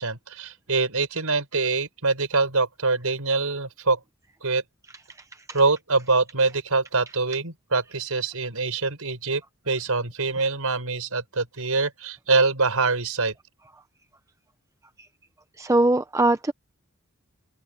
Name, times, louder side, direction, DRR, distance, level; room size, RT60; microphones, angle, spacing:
voice 1, 0.0-4.0 4.4-4.6 5.5-13.3, right 3 dB, 75° right, 4.5 m, -24 dB
voice 2, 15.6-16.5, right 2 dB, 15° right, 0.5 m, -21 dB
open air
head